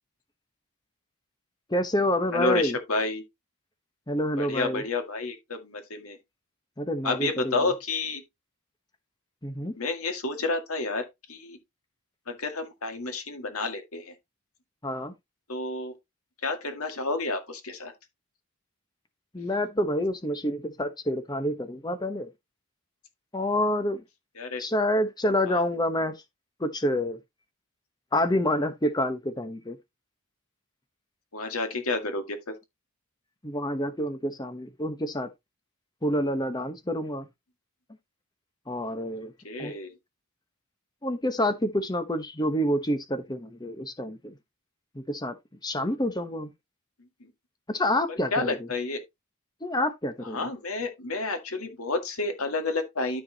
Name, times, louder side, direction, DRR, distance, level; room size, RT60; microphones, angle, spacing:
voice 1, 1.7-2.8 4.1-4.8 6.8-7.7 9.4-9.7 14.8-15.1 19.3-22.3 23.3-24.0 24.6-26.2 26.6-27.2 28.1-29.8 33.4-35.3 36.0-37.3 38.7-39.3 39.6-39.7 41.0-44.4 44.9-45.4 45.6-46.5 47.7-48.7 49.6-50.5, left 1 dB, 20° left, 1.0 m, -28 dB
voice 2, 2.3-3.2 4.4-6.2 7.0-8.2 9.8-11.6 12.3-14.1 15.5-15.9 16.4-17.9 24.4-24.7 25.5-25.6 31.3-32.4 39.2-40.0 48.1-49.0 50.3-53.2, left 3 dB, 85° left, 2.0 m, -30 dB
13.0 x 4.7 x 2.8 m
head